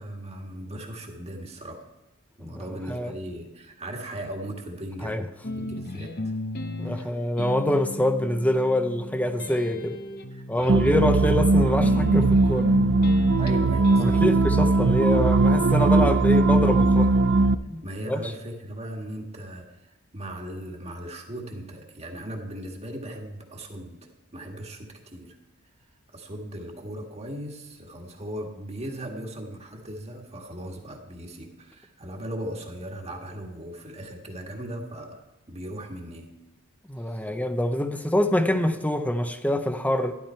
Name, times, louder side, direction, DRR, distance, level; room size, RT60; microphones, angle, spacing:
voice 1, 0.0-1.9 2.4-6.3 6.8-7.3 10.3-10.9 13.3-14.2 17.8-25.4 26.1-36.3 37.1-37.3, right 1 dB, 30° right, 2 dB, 1.7 m, -38 dB
voice 2, 2.4-3.1 5.0-5.2 6.8-10.0 10.5-12.7 14.0-17.1 17.7-18.3 36.9-40.1, left 1 dB, 5° left, 8 dB, 0.7 m, -25 dB
sound 1, 5.4-14.7, left 1 dB, 45° left, 0.9 m, -36 dB
sound 2, 10.7-17.5, right 3 dB, 55° right, 0.5 m, -19 dB
12.0 x 11.5 x 4.5 m, 1.0 s
head